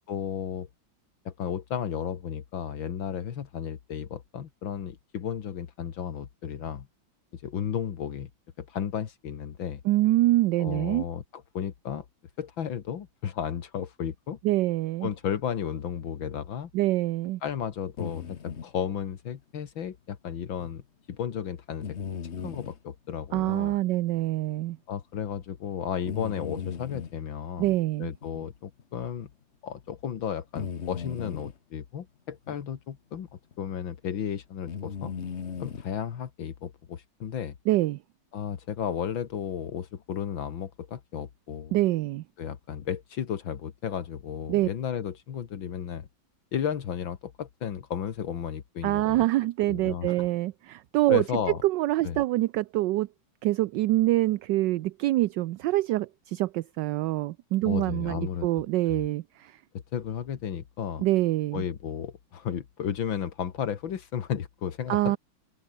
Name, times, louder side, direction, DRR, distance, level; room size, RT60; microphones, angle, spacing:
voice 1, 0.1-0.7 1.3-6.9 7.3-8.3 8.6-9.8 10.6-12.1 12.4-14.4 15.0-16.7 17.4-20.8 21.1-22.0 22.4-23.8 24.9-27.7 28.0-29.3 29.6-33.3 33.6-35.1 35.6-37.5 38.3-41.8 42.4-46.1 46.5-49.2 49.7-50.3 51.1-51.6 52.0-52.2 57.7-58.6 59.9-61.0 61.5-65.2, left 8 dB, 80° left, 2.3 m, -33 dB
voice 2, 9.8-11.0 14.4-15.1 16.7-17.4 23.3-24.8 27.6-28.1 37.7-38.0 41.7-42.2 44.5-44.7 48.8-51.2 51.6-53.1 53.4-59.6 61.0-61.6 64.9-65.2, right 16 dB, 75° right, 1.2 m, -25 dB
sound 1, 18.0-18.7 20.6-20.7 21.8-22.8 23.5-23.6 24.2-24.3 26.1-27.2 28.2-28.3 28.8-28.9 30.5-31.5 32.5-32.6 33.5-33.7 34.7-35.9, left 7 dB, 40° left, 1.3 m, -36 dB
open air
omnidirectional pair, 2.1 m